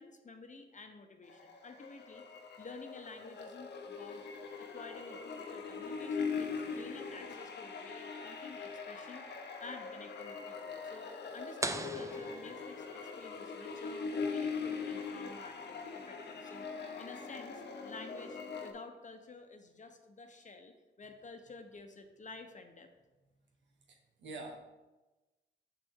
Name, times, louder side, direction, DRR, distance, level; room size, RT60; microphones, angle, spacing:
voice 1, 0.0-2.2 2.6-4.2 4.6-9.2 9.6-16.7 17.0-22.9, left 3 dB, 40° left, 5 dB, 0.9 m, -51 dB
sound 1, 1.2-18.7, left 5 dB, 70° left, 0.9 m, -41 dB
sound 2, 11.6-13.3, right 2 dB, 15° right, 0.6 m, -40 dB
voice 2, 23.9-24.6, right 2 dB, 75° right, 1 dB, 1.3 m, -46 dB
6.3 x 5.8 x 3.7 m, 1.1 s
cardioid pair, 55°, 19 cm